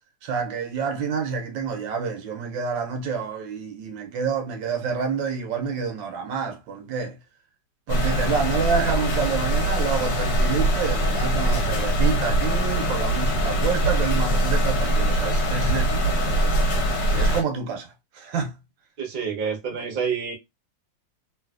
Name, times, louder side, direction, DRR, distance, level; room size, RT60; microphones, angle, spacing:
voice 1, 0.2-7.2 7.9-16.4 17.1-17.9 18.1-18.5, right 5 dB, 75° right, 1.3 m, -28 dB
sound 1, 7.9-17.4, right 1 dB, 65° left, 1.2 m, -22 dB
voice 2, 19.0-20.3, right 6 dB, 50° right, 0.7 m, -28 dB
3.1 x 2.7 x 2.3 m
omnidirectional pair, 2.1 m